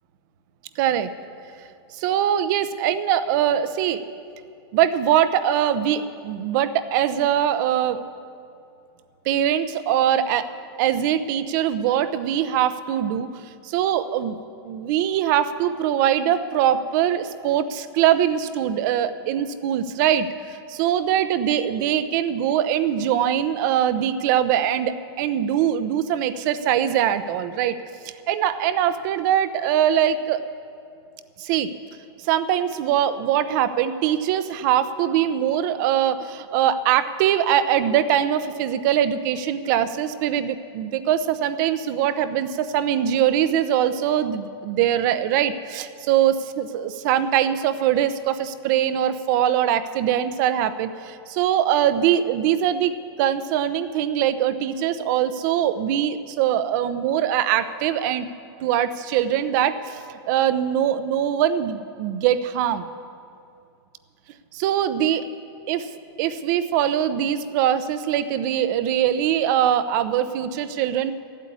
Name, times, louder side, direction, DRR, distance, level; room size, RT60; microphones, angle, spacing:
voice 1, 0.8-1.1 1.9-4.0 4.7-8.0 9.2-10.5 10.8-13.3 13.6-14.3 14.6-27.8 28.0-30.4 31.4-31.7 32.2-58.3 58.6-62.9 64.5-65.3 65.7-71.1, right 10 dB, 45° right, 12 dB, 0.8 m, -22 dB
14.0 x 8.4 x 9.8 m, 2.5 s
supercardioid pair, 150°, 14 cm